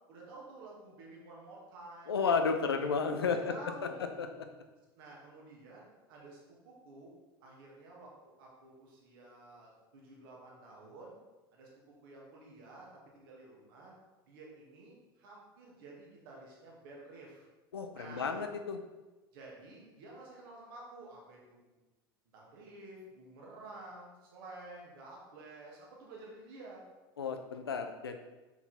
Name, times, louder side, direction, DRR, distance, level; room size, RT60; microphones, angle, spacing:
voice 1, 0.1-2.4 2.6-2.8 3.3-4.1 5.0-6.4 6.6-7.1 7.4-11.2 11.5-13.9 14.3-17.5 17.9-18.4 19.3-21.7 22.3-26.8, right 2 dB, 65° right, -3 dB, 2.2 m, -51 dB
voice 2, 2.1-3.4 4.2-4.3 17.7-18.8 27.2-28.2, left 5 dB, 80° left, 6 dB, 0.7 m, -32 dB
6.0 x 5.9 x 4.3 m, 1.1 s
figure-of-eight pair, 75°, 13 cm